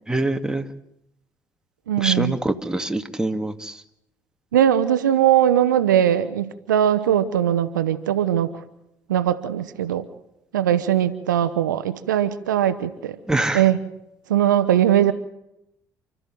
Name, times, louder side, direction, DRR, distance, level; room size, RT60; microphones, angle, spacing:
voice 1, 0.1-0.7 2.0-3.7 13.3-13.6, right 2 dB, 5° right, 7 dB, 2.1 m, -24 dB
voice 2, 1.9-2.4 4.5-8.6 9.1-10.0 10.5-13.2 13.5-13.8 14.3-15.1, right 10 dB, 85° right, 13 dB, 1.0 m, -20 dB
29.0 x 13.5 x 7.7 m, 0.82 s
hypercardioid pair, 55°, 10 cm